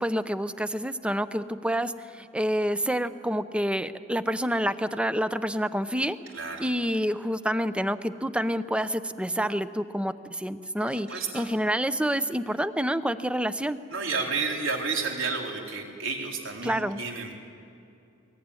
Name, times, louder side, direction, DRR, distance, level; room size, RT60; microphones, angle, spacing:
voice 1, 0.0-6.2 6.6-13.8 16.6-17.0, equal, 5° right, 12 dB, 0.7 m, -28 dB
voice 2, 6.3-6.7 11.1-11.5 13.9-17.3, right 4 dB, 80° right, 1 dB, 3.8 m, -31 dB
22.0 x 20.5 x 9.8 m, 2.7 s
head